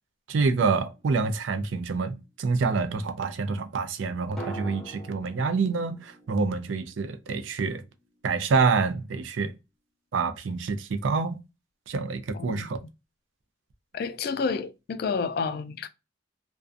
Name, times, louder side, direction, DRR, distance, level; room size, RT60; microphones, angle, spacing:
voice 1, 0.3-7.8 8.2-9.5 10.1-11.4 11.9-12.8, right 4 dB, 80° right, 0.4 m, -27 dB
sound 1, 0.9-1.9 4.4-8.3 8.6-8.7, right 2 dB, ahead, 0.8 m, -45 dB
voice 2, 12.3-12.9 13.9-15.9, left 5 dB, 50° left, 0.3 m, -30 dB
2.5 x 2.2 x 2.4 m
head